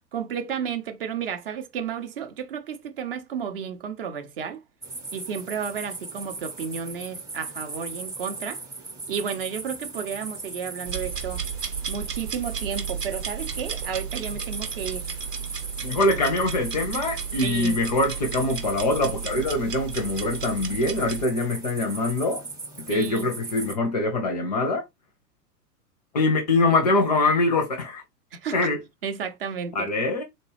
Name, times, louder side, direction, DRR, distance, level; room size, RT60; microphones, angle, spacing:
voice 1, 0.1-4.6 5.1-8.6 9.1-11.4 11.9-15.1 17.4-17.8 22.9-23.3 28.3-28.7 29.0-29.9, right 7 dB, 35° right, 0.6 m, -32 dB
sound 1, 4.8-23.7, right 3 dB, 5° right, 0.8 m, -38 dB
sound 2, 10.9-21.2, right 7 dB, 75° right, 1.1 m, -34 dB
voice 2, 15.8-22.4 22.8-24.8 26.1-28.0 28.5-28.8 29.7-30.2, left 2 dB, 25° left, 0.5 m, -24 dB
3.9 x 2.2 x 3.1 m
figure-of-eight pair, 105°, 48 cm